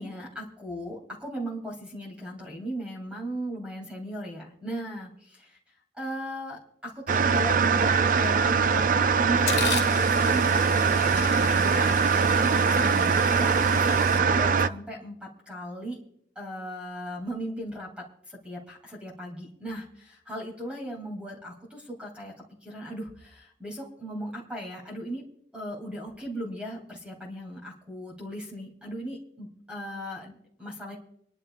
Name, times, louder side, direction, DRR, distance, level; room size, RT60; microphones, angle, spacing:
voice 1, 0.0-5.6 5.9-8.8 9.1-16.0 16.3-22.3 22.6-25.3 25.5-31.0, right 1 dB, 5° right, -2 dB, 2.7 m, -37 dB
sound 1, 7.1-14.7, right 5 dB, 50° right, 0.4 m, -22 dB
sound 2, 8.6-8.7 9.1-14.2, left 6 dB, 65° left, 1.8 m, -36 dB
26.5 x 11.0 x 2.4 m, 0.69 s
head